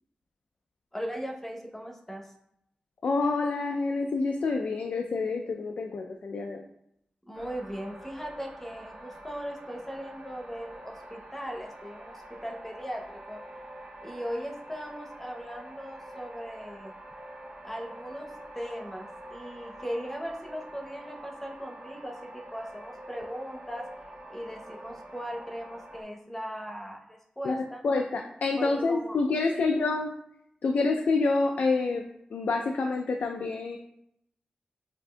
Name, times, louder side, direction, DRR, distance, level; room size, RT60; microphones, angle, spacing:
voice 1, 0.9-2.3 7.3-13.4 14.0-16.9 17.6-23.8 24.3-27.8 28.6-29.2 29.5-29.7, equal, 10° left, 1 dB, 0.8 m, -38 dB
voice 2, 3.0-6.6 27.4-30.1 30.6-32.0 32.3-33.8, left 3 dB, 80° left, 3 dB, 0.3 m, -27 dB
sound 1, 7.3-26.0, right 1 dB, 80° right, 1.1 m, -46 dB
7.6 x 2.6 x 2.2 m, 0.76 s
wide cardioid pair, 70°, 3 cm